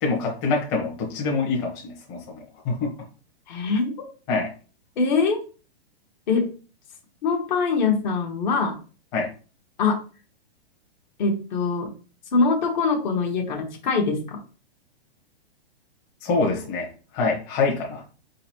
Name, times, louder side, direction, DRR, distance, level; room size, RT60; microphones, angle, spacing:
voice 1, 0.0-2.9 4.3-4.5 9.1-9.3 16.2-16.9 17.1-18.0, left 4 dB, 25° left, -1 dB, 1.1 m, -25 dB
voice 2, 3.5-3.9 5.0-5.4 6.3-6.5 7.2-8.7 9.8-10.0 11.2-11.9 12.3-14.4, left 4 dB, 45° left, 2 dB, 1.1 m, -23 dB
4.3 x 3.9 x 3.0 m, 0.36 s
hypercardioid pair, 165°, 31 cm